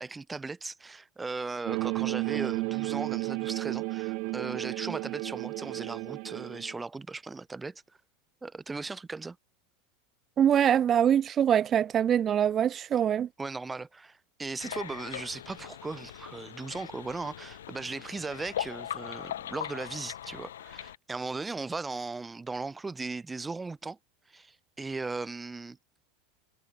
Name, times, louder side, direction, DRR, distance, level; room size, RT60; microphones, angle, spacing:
voice 1, 0.0-7.8 8.4-9.4 13.4-24.0 24.3-25.8, right 3 dB, 15° right, 7.9 m, -37 dB
sound 1, 1.7-6.7, right 29 dB, 55° right, 2.0 m, -33 dB
voice 2, 10.4-13.3, right 9 dB, 30° right, 1.6 m, -24 dB
sound 2, 14.6-21.0, left 11 dB, 85° left, 5.5 m, -40 dB
hypercardioid pair, 110°, 0 cm